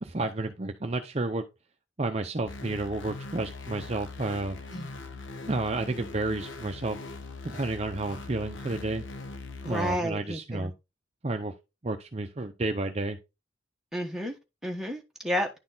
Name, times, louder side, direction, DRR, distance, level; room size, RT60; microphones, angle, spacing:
voice 1, 0.0-1.4 2.0-4.6 5.5-7.0 7.4-9.0 9.7-10.7 11.2-11.5 11.8-13.2, right 2 dB, 30° right, 0.6 m, -31 dB
sound 1, 2.5-10.0, left 3 dB, 70° left, 0.9 m, -41 dB
voice 2, 9.6-10.7 13.9-14.3 14.6-15.5, equal, ahead, 1.2 m, -31 dB
10.5 x 4.1 x 3.9 m
head